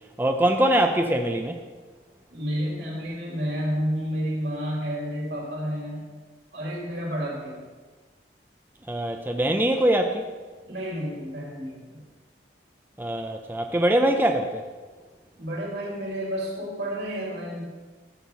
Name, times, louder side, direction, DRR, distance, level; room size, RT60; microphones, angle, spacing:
voice 1, 0.2-1.6 8.9-10.2 13.0-14.6, right 1 dB, 10° right, 4 dB, 0.6 m, -23 dB
voice 2, 2.3-6.1 6.5-7.6 10.7-12.0 15.4-17.7, equal, 70° right, -3 dB, 4.2 m, -30 dB
14.5 x 6.0 x 6.9 m, 1.4 s
head